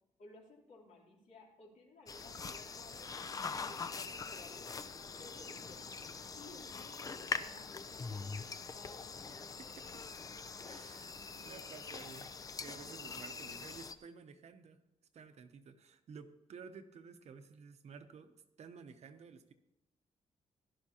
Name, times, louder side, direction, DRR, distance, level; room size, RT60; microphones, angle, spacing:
voice 1, 0.2-3.2 3.5-4.7 5.2-5.8 6.4-8.2 8.6-9.7, left 2 dB, 70° left, -2 dB, 3.2 m, -57 dB
sound 1, 2.1-13.9, left 5 dB, 30° left, 0.5 m, -43 dB
voice 2, 10.6-14.8 15.1-18.3 18.6-19.5, right 5 dB, 60° right, 8 dB, 0.9 m, -53 dB
16.5 x 12.0 x 2.9 m, 0.88 s
wide cardioid pair, 170°, 13 cm